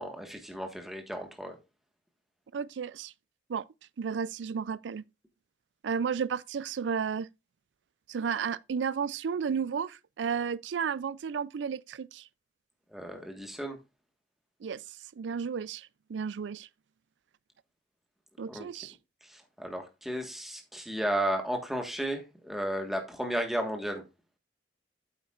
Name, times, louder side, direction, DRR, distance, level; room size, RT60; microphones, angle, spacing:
voice 1, 0.0-1.6 12.9-13.8 18.5-18.7 19.2-24.0, right 1 dB, ahead, 1.5 m, -34 dB
voice 2, 2.5-3.1 3.5-3.6 4.0-5.0 5.8-7.3 8.1-12.2 14.6-14.8 15.2-16.7 18.4-18.9, right 6 dB, 85° right, 0.4 m, -33 dB
8.7 x 8.5 x 2.4 m
head